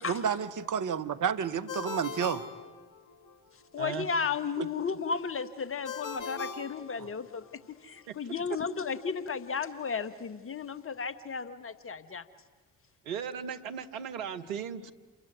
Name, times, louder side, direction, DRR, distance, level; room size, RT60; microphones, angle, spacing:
voice 1, 0.1-2.4 4.6-4.7, right 7 dB, 50° right, 10 dB, 1.4 m, -30 dB
Ringtone, 1.7-3.4 5.9-7.5, left 5 dB, 50° left, 3.3 m, -40 dB
voice 2, 3.7-12.2, left 5 dB, 30° left, 14 dB, 1.6 m, -34 dB
voice 3, 13.0-14.9, right 7 dB, 85° right, 8 dB, 1.1 m, -37 dB
28.0 x 22.0 x 9.5 m, 1.4 s
hypercardioid pair, 50°, 40 cm